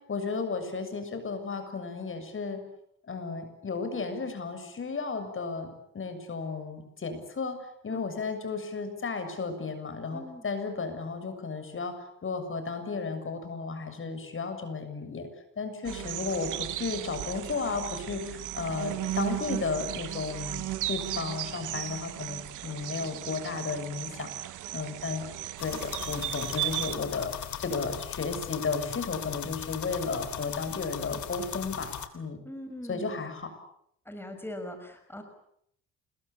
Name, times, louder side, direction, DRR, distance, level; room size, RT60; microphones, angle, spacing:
voice 1, 0.1-2.6 3.1-12.0 12.2-15.3 15.6-25.3 25.6-27.3 27.6-32.4 32.9-33.5, left 4 dB, 45° left, 9 dB, 7.2 m, -34 dB
voice 2, 10.1-10.5 15.8-16.1 32.4-33.2 34.1-35.2, left 1 dB, 5° left, 6 dB, 6.0 m, -41 dB
sound 1, 15.8-27.0, right 14 dB, 90° right, 1.6 m, -36 dB
sound 2, 25.6-32.1, left 10 dB, 70° left, 3.2 m, -38 dB
28.5 x 22.0 x 8.7 m, 0.70 s
cardioid pair, 90°, 30 cm